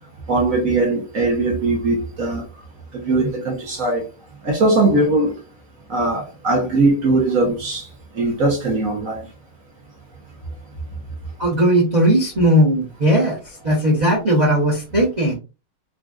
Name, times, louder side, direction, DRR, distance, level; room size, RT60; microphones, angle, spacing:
voice 1, 0.3-2.4 2.9-4.1 4.4-5.3 5.9-7.8 8.2-9.3, right 2 dB, 60° right, 0.9 m, -20 dB
voice 2, 11.4-15.4, equal, 30° right, 0.9 m, -17 dB
3.9 x 2.4 x 2.3 m
omnidirectional pair, 2.2 m